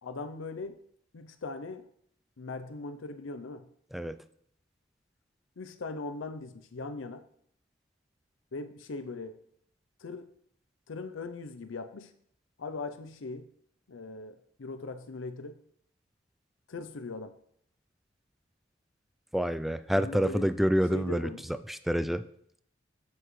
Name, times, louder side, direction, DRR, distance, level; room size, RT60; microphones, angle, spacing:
voice 1, 0.0-0.8 1.1-1.8 2.4-3.7 5.6-7.2 8.5-9.4 10.0-10.3 10.9-12.1 12.6-13.5 13.9-15.6 16.7-17.3 19.9-20.5 20.9-21.4, left 3 dB, 90° left, 10 dB, 0.6 m, -40 dB
voice 2, 19.3-22.2, equal, ahead, 11 dB, 0.3 m, -28 dB
10.0 x 8.0 x 3.2 m, 0.68 s
head